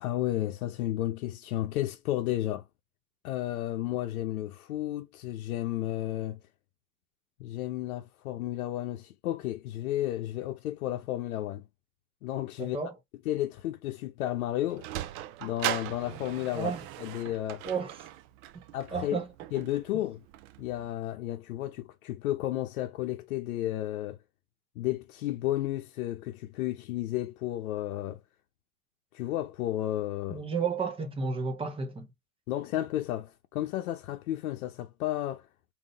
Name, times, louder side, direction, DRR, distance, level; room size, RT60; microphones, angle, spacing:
voice 1, 0.0-2.6 3.2-6.4 7.4-11.6 12.2-12.8 13.3-14.9 15.4-16.7 17.0-17.6 18.7-19.2 19.5-20.2 20.6-24.2 24.8-28.2 29.1-30.4 32.5-35.4, left 14 dB, 75° left, 0.8 m, -32 dB
voice 2, 12.6-12.9 16.5-16.8 17.6-17.9 18.9-19.3 30.3-32.1, right 5 dB, 15° right, 1.0 m, -32 dB
Sliding door, 14.3-20.9, right 13 dB, 40° right, 0.4 m, -39 dB
3.7 x 2.8 x 3.8 m
supercardioid pair, 130°, 43 cm